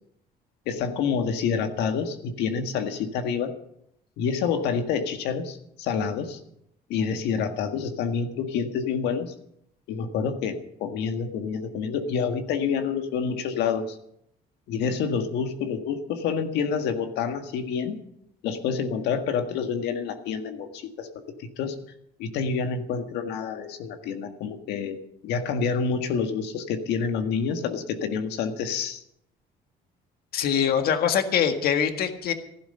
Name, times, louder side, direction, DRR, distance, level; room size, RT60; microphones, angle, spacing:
voice 1, 0.7-3.5 4.2-6.4 6.9-9.3 9.9-14.0 14.7-18.0 18.4-21.8 22.2-25.0 25.2-29.0, left 6 dB, 85° left, 6 dB, 1.8 m, -28 dB
voice 2, 30.3-32.3, left 8 dB, 65° left, 7 dB, 1.8 m, -23 dB
15.0 x 12.0 x 5.6 m, 0.75 s
cardioid pair, 110°, 17 cm